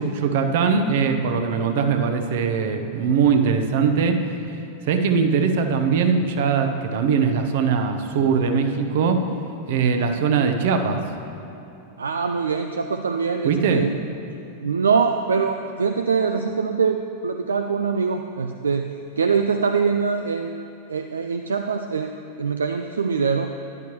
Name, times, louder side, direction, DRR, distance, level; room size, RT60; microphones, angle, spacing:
voice 1, 0.0-4.2 4.5-4.6 4.8-9.2 9.7-11.0 13.4-13.8, right 6 dB, 55° right, 6 dB, 0.9 m, -21 dB
voice 2, 12.0-13.9 14.6-20.6 20.9-23.5, right 5 dB, 70° right, 6 dB, 0.4 m, -23 dB
13.5 x 11.0 x 3.1 m, 3.0 s
figure-of-eight pair, 90°, 0 cm